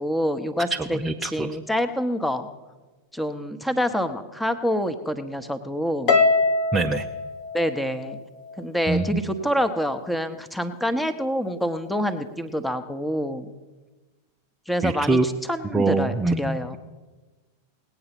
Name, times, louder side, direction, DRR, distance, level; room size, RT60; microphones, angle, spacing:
voice 1, 0.0-1.0 1.3-2.5 3.1-6.2 7.5-8.2 8.6-13.5 14.7-15.2 15.5-16.8, equal, 5° left, 10 dB, 1.0 m, -26 dB
voice 2, 0.7-1.6 6.7-7.1 8.9-9.2 14.8-15.3 15.7-16.8, right 3 dB, 10° right, 3 dB, 0.7 m, -24 dB
Harp, 6.1-8.5, left 3 dB, 40° left, 1.0 m, -23 dB
19.0 x 8.7 x 5.9 m, 1.2 s
figure-of-eight pair, 90°, 0 cm